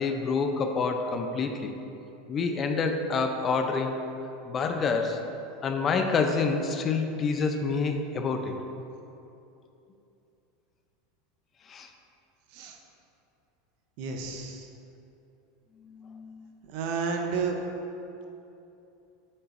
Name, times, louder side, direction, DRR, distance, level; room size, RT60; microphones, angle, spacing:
voice 1, 0.0-1.7 2.3-4.0 4.5-5.2 5.6-8.5 11.7-11.9 16.0-16.3, left 4 dB, 30° left, 5 dB, 0.5 m, -27 dB
voice 2, 14.0-14.7 16.7-17.6, right 5 dB, 65° right, 3 dB, 0.8 m, -31 dB
8.0 x 5.5 x 2.6 m, 2.8 s
supercardioid pair, 110°, 0 cm